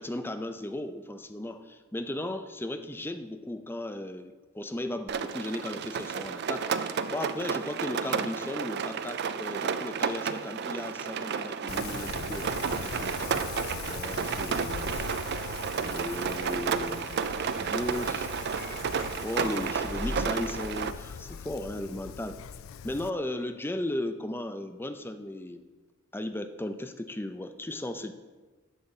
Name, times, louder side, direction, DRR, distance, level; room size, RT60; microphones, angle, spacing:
voice 1, 0.0-13.3 13.9-15.0 15.8-17.2 17.5-18.3 19.2-22.4 22.8-25.6 26.1-28.1, left 1 dB, 10° left, 9 dB, 0.5 m, -36 dB
Rain, 5.1-20.9, right 6 dB, 55° right, 0.4 m, -32 dB
Wind, 11.7-23.1, left 7 dB, 85° left, 0.4 m, -41 dB
sound 1, 18.4-21.9 22.2-22.5, left 1 dB, 55° left, 1.3 m, -42 dB
10.5 x 4.0 x 7.2 m, 1.3 s
head